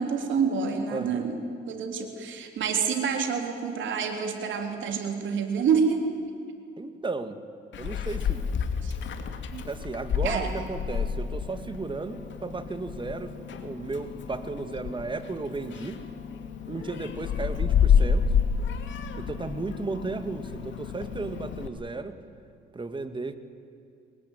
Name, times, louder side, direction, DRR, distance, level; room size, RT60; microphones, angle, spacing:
voice 1, 0.0-1.4 1.7-6.0 8.8-8.9 9.5-9.6 10.2-10.5, right 6 dB, 75° right, 4 dB, 3.7 m, -27 dB
voice 2, 0.9-1.3 6.8-7.4 7.8-8.5 9.6-13.3 13.6-16.0 16.7-18.3 19.2-22.2 22.7-23.4, right 3 dB, 25° right, 9 dB, 2.1 m, -34 dB
Meow, 7.7-21.7, left 7 dB, 70° left, 2.6 m, -29 dB
24.5 x 21.0 x 9.3 m, 2.5 s
cardioid pair, 90°, 20 cm